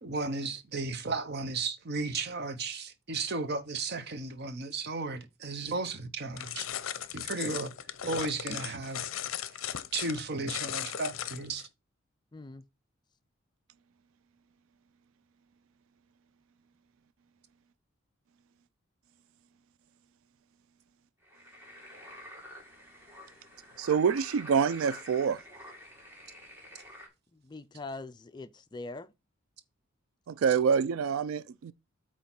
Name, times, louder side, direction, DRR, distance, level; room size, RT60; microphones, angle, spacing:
voice 1, 0.0-6.7 7.1-7.7 8.0-9.1 9.5-9.6 9.9-11.7, right 3 dB, 50° right, 0.7 m, -34 dB
sound 1, 6.4-11.7, left 10 dB, 70° left, 0.5 m, -37 dB
voice 2, 12.3-12.6 27.3-29.1, left 3 dB, 20° left, 0.4 m, -42 dB
sound 2, 21.2-27.1, equal, 10° right, 1.9 m, -49 dB
voice 3, 23.8-25.4 30.3-31.7, right 6 dB, 75° right, 0.3 m, -26 dB
8.5 x 3.0 x 5.8 m
head